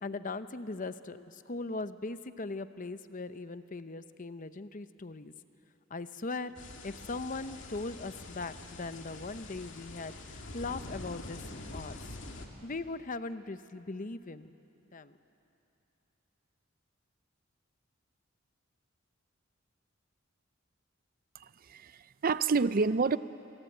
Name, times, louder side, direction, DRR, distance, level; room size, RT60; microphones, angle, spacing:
voice 1, 0.0-5.3 5.9-6.5 6.8-12.1 12.6-14.5 14.9-15.2, left 3 dB, 40° left, 11 dB, 0.8 m, -39 dB
sound 1, 6.6-12.5, left 2 dB, 65° left, 2.5 m, -45 dB
voice 2, 21.3-23.2, right 4 dB, 45° right, 15 dB, 0.5 m, -29 dB
26.0 x 23.0 x 9.0 m, 2.8 s
head